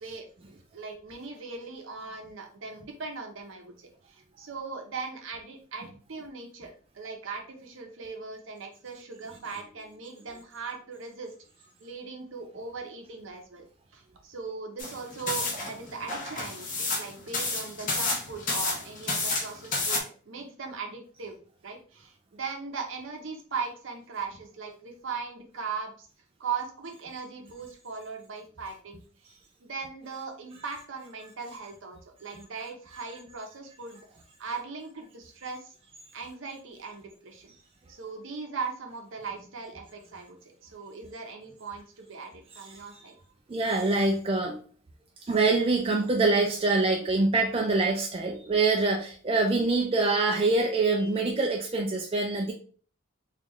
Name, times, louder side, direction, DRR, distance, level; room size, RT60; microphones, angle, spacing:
voice 1, 0.0-11.3 11.8-13.6 13.9-21.3 21.6-26.1 26.4-34.0 34.4-35.7 36.1-37.5 37.9-43.2, right 5 dB, 65° right, 4 dB, 0.7 m, -39 dB
sound 1, 14.8-20.0, left 3 dB, 40° left, 0.8 m, -30 dB
voice 2, 43.5-44.6 45.2-52.5, right 3 dB, 25° right, 1 dB, 0.3 m, -25 dB
3.7 x 2.4 x 3.0 m, 0.43 s
head